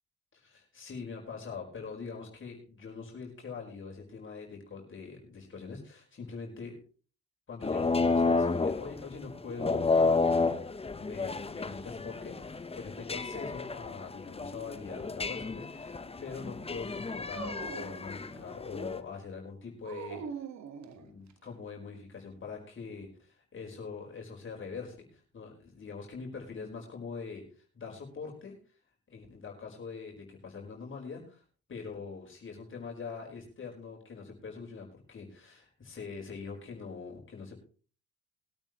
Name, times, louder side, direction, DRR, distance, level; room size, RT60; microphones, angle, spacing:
voice 1, 0.3-6.8 7.5-15.9 16.2-20.2 20.9-27.4 27.7-28.6 29.1-31.4 31.7-37.5, left 5 dB, 40° left, -1 dB, 4.9 m, -43 dB
sound 1, 7.6-19.0, left 4 dB, 20° left, 1.0 m, -31 dB
Dog, 17.3-18.7 19.8-21.5, right 7 dB, 65° right, 1.7 m, -43 dB
21.5 x 9.0 x 3.1 m, 0.38 s
cardioid pair, 90°, 30 cm